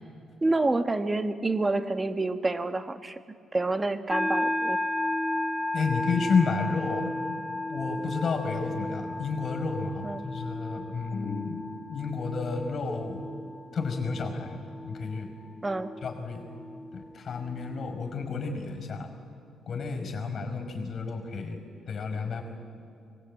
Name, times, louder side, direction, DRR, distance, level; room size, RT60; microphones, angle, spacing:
voice 1, 0.4-3.2 3.5-4.8 10.0-10.3 15.6-15.9, right 2 dB, 20° right, 9 dB, 1.2 m, -28 dB
sound 1, 4.1-18.0, left 1 dB, 10° left, 0.7 m, -34 dB
voice 2, 5.7-7.1 7.7-13.2 13.7-14.6 14.9-15.3 16.0-16.5 16.9-19.1 19.7-21.6 21.9-22.4, left 4 dB, 50° left, 5 dB, 5.3 m, -31 dB
24.0 x 20.0 x 8.9 m, 2.5 s
cardioid pair, 90°, 0 cm